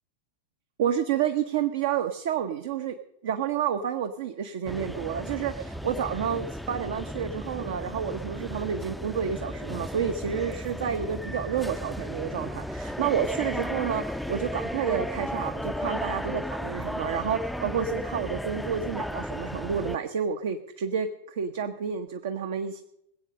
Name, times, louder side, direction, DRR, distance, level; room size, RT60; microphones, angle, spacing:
voice 1, 0.8-3.0 3.2-22.8, right 8 dB, 55° right, 8 dB, 0.9 m, -30 dB
sound 1, 4.7-20.0, equal, ahead, 0.5 m, -34 dB
20.5 x 8.3 x 6.5 m, 0.80 s
figure-of-eight pair, 90°, 0 cm